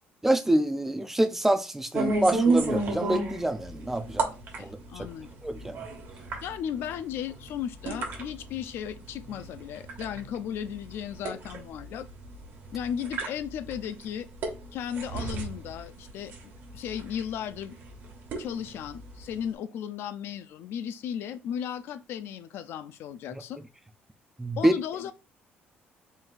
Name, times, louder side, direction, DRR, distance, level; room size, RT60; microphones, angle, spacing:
voice 1, 0.2-4.3 4.6-4.8 5.4-5.8 24.4-24.7, right 1 dB, 10° right, 0.4 m, -26 dB
sound 1, 1.9-19.5, right 3 dB, 60° right, 1.2 m, -33 dB
voice 2, 4.6-5.3 6.4-12.1 12.7-14.3 14.7-17.8 18.4-23.6 24.6-25.1, left 9 dB, 65° left, 0.4 m, -35 dB
3.9 x 3.8 x 2.5 m
cardioid pair, 140°, 4 cm